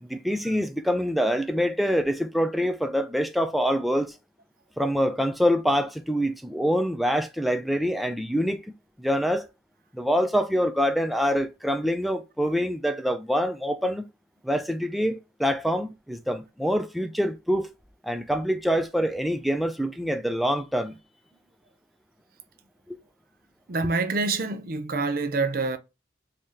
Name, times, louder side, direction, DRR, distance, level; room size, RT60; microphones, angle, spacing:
voice 1, 0.0-4.2 4.8-8.7 9.0-9.5 9.9-14.0 14.4-17.7 18.0-21.0 22.9-23.0, equal, ahead, 0.3 m, -25 dB
voice 2, 23.7-25.8, right 3 dB, 50° right, 0.6 m, -26 dB
3.2 x 2.8 x 3.6 m
head